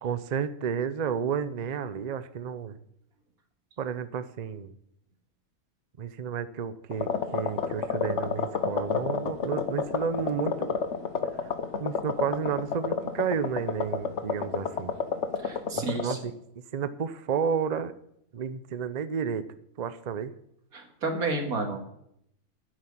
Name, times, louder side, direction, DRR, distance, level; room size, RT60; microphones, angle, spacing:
voice 1, 0.0-2.8 3.8-4.7 6.0-10.8 11.4-11.5 11.8-14.9 15.7-16.4 16.7-17.9 18.3-19.5 19.8-20.3, right 7 dB, 45° right, 13 dB, 0.5 m, -31 dB
sound 1, 6.9-16.1, left 6 dB, 55° left, 1.2 m, -30 dB
voice 2, 15.4-16.2 20.7-21.8, right 3 dB, 85° right, 4 dB, 2.5 m, -31 dB
10.0 x 7.8 x 8.5 m, 0.75 s
omnidirectional pair, 1.5 m